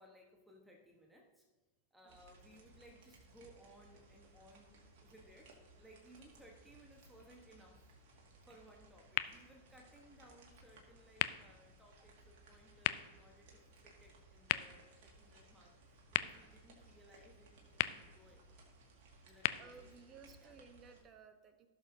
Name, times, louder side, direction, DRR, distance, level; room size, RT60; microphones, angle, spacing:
voice 1, 0.0-1.5 1.9-4.7 5.0-18.6 19.2-20.1 20.4-20.6, right 1 dB, 5° right, 1 dB, 1.2 m, -62 dB
sound 1, 2.1-21.0, right 2 dB, 50° right, 2.0 m, -62 dB
sound 2, 9.1-21.0, left 16 dB, 50° left, 0.4 m, -43 dB
voice 2, 19.6-21.7, right 5 dB, 30° right, 9 dB, 0.9 m, -57 dB
16.0 x 6.5 x 2.7 m, 1.3 s
figure-of-eight pair, 90°, 0 cm